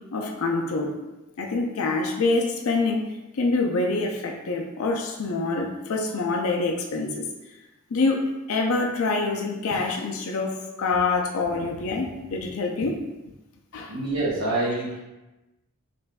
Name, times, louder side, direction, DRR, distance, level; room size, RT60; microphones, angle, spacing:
voice 1, 0.1-0.9 1.4-3.0 3.3-7.2 7.9-8.2 8.5-13.0 13.7-13.9, left 3 dB, 70° left, 1 dB, 0.5 m, -26 dB
voice 2, 13.9-15.0, right 2 dB, 75° right, -9 dB, 1.0 m, -26 dB
5.3 x 2.5 x 2.2 m, 1.0 s
head